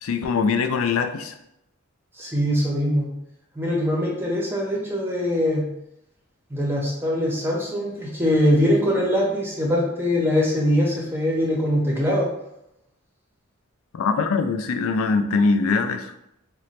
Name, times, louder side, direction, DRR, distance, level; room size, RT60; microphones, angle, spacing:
voice 1, 0.0-1.3 13.9-16.1, left 4 dB, 85° left, 7 dB, 0.4 m, -22 dB
voice 2, 2.2-3.1 3.6-5.7 6.5-12.3, equal, 10° right, -3 dB, 0.6 m, -22 dB
3.0 x 2.1 x 4.1 m, 0.81 s
head